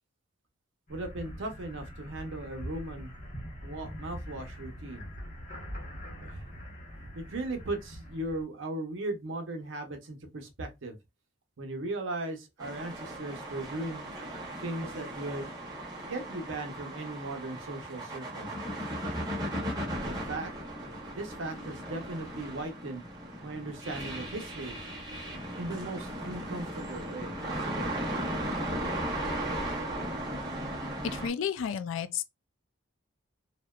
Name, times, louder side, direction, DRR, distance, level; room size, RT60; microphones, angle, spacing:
sound 1, 0.9-8.4, equal, 35° left, 0.7 m, -43 dB
voice 1, 0.9-3.1 3.6-5.1 6.2-6.3 7.1-10.9 11.6-14.1 14.6-15.5 16.0-18.5 20.0-20.5 20.8-23.0 23.4-24.8 25.6-27.9, right 2 dB, 65° right, 0.6 m, -37 dB
sound 2, 12.6-31.3, right 1 dB, 20° right, 0.6 m, -36 dB
voice 2, 31.0-32.2, left 7 dB, 65° left, 0.3 m, -32 dB
2.7 x 2.1 x 2.2 m
head